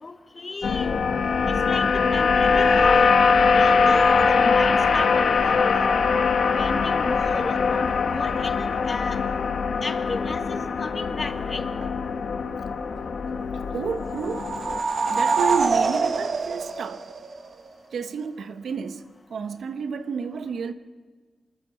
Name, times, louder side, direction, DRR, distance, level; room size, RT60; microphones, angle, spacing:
voice 1, 0.0-1.0 1.7-1.9 2.1-3.1 3.6-5.8 6.5-9.2 9.8-11.6, left 3 dB, 30° left, 1.6 m, -33 dB
sound 1, 0.6-14.8, left 5 dB, 75° left, 1.5 m, -22 dB
voice 2, 13.5-14.5 15.1-17.1 17.9-19.0 19.3-20.7, right 6 dB, 85° right, 1.0 m, -30 dB
sound 2, 14.1-17.7, right 4 dB, 55° right, 1.4 m, -25 dB
26.5 x 13.5 x 7.3 m
wide cardioid pair, 140°, 0 cm